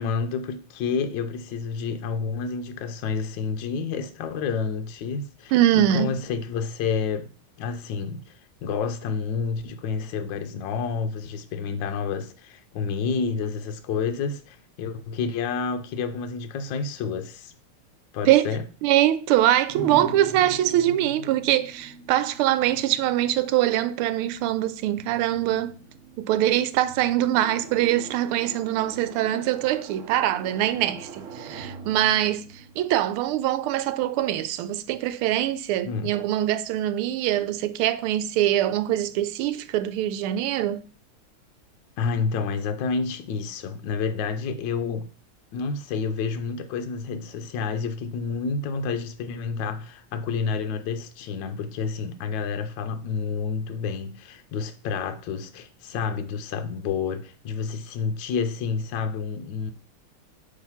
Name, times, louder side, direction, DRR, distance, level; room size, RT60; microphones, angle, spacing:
voice 1, 0.0-7.3 7.6-17.5 18.1-18.6 35.8-36.1 42.0-45.1 45.5-59.7, left 5 dB, 70° left, 1.3 m, -29 dB
voice 2, 5.5-6.2 18.3-18.5 18.8-25.8 26.2-40.8, right 13 dB, 85° right, 1.5 m, -23 dB
sound 1, 19.7-33.5, right 4 dB, 70° right, 0.7 m, -42 dB
8.6 x 3.3 x 5.6 m
omnidirectional pair, 2.4 m